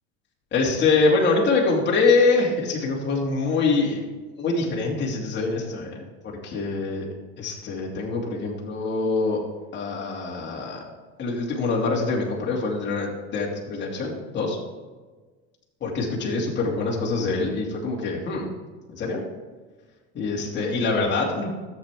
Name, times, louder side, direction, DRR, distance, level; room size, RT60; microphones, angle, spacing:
voice 1, 0.5-4.0 4.4-7.1 7.4-9.4 9.7-10.8 11.2-14.6 15.8-18.5 18.9-19.2 20.1-21.5, left 3 dB, 30° left, -3 dB, 2.6 m, -24 dB
12.5 x 7.6 x 3.6 m, 1.3 s
supercardioid pair, 120°, 35 cm